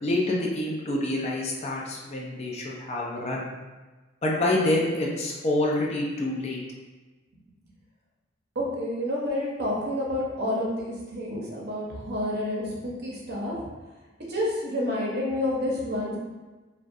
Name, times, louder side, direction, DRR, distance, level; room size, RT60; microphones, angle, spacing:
voice 1, 0.0-3.5 4.2-6.6, left 1 dB, 35° left, -3 dB, 0.4 m, -27 dB
voice 2, 8.6-13.6 14.3-16.2, left 1 dB, 55° right, -3 dB, 0.6 m, -29 dB
2.3 x 2.1 x 2.6 m, 1.2 s
head